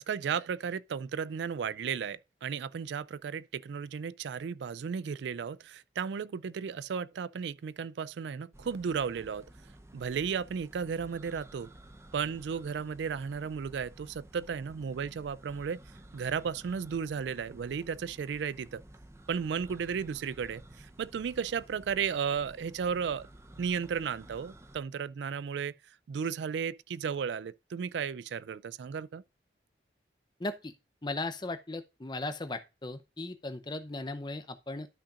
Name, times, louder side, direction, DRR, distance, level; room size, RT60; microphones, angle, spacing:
voice 1, 0.0-9.5 9.9-11.7 12.1-15.8 16.1-18.8 19.3-23.3 23.6-25.7 26.1-29.2, right 6 dB, 75° right, 0.3 m, -34 dB
sound 1, 8.5-24.8, right 1 dB, 15° right, 0.7 m, -53 dB
voice 2, 30.4-30.7 31.0-34.9, left 2 dB, 25° left, 0.6 m, -37 dB
12.5 x 5.7 x 2.5 m
head